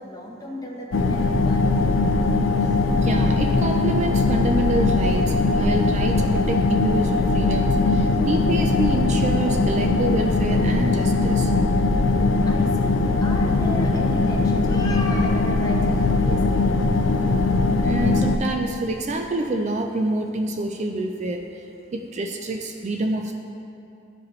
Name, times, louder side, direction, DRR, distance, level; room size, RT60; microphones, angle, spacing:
voice 1, 0.0-2.0 12.5-13.0 13.2-16.7, left 1 dB, 20° left, -2 dB, 0.9 m, -35 dB
sound 1, 0.9-18.4, left 3 dB, 75° left, 0.4 m, -20 dB
voice 2, 2.9-11.5 17.8-21.5 21.9-23.3, right 2 dB, 35° right, 3 dB, 0.4 m, -27 dB
13.0 x 4.9 x 3.1 m, 2.7 s
head